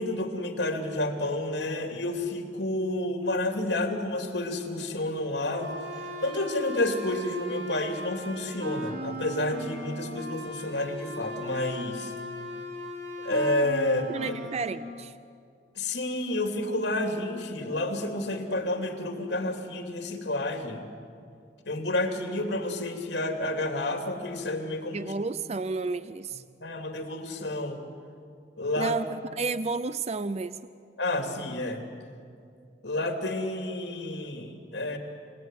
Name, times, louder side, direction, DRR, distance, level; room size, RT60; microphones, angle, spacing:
voice 1, 0.0-12.1 13.2-14.3 15.7-20.8 21.6-25.1 26.6-27.8 28.6-28.9 31.0-31.8 32.8-35.0, left 1 dB, 70° left, 4 dB, 3.1 m, -30 dB
sound 1, 5.5-14.7, equal, 70° right, 3.7 m, -38 dB
voice 2, 14.1-15.1 24.9-26.4 28.8-30.6, right 4 dB, 40° right, 14 dB, 0.5 m, -31 dB
28.5 x 18.5 x 9.3 m, 2.3 s
head